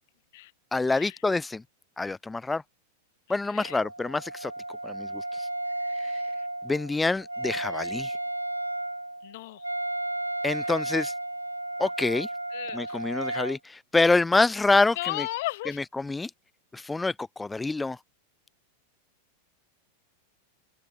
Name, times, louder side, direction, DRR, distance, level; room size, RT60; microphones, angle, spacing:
voice 1, 0.7-1.6 2.0-2.6 3.3-4.5 4.8-5.5 6.0-6.2 6.6-8.2 10.4-11.1 11.8-12.3 12.7-15.3 16.0-16.3 16.7-18.0, left 3 dB, 10° left, 0.5 m, -26 dB
Wind instrument woodwind instrument, 3.6-13.6, right 2 dB, 85° right, 0.5 m, -33 dB
voice 2, 9.2-9.6 12.5-13.0 15.0-15.8, left 18 dB, 50° left, 1.6 m, -34 dB
figure-of-eight pair, 90°, 0 cm